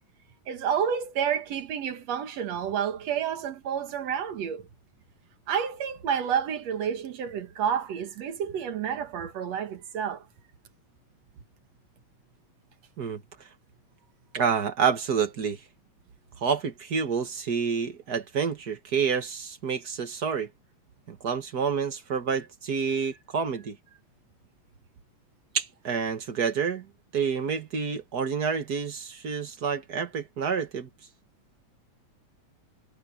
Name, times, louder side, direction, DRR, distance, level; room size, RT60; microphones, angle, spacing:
voice 1, 0.5-4.6 5.5-10.2, right 8 dB, 65° right, 2.5 m, -29 dB
voice 2, 14.3-15.6 16.4-20.5 21.1-23.8 25.5-26.9 27.1-30.9, right 6 dB, 40° right, 1.6 m, -28 dB
omnidirectional pair, 3.3 m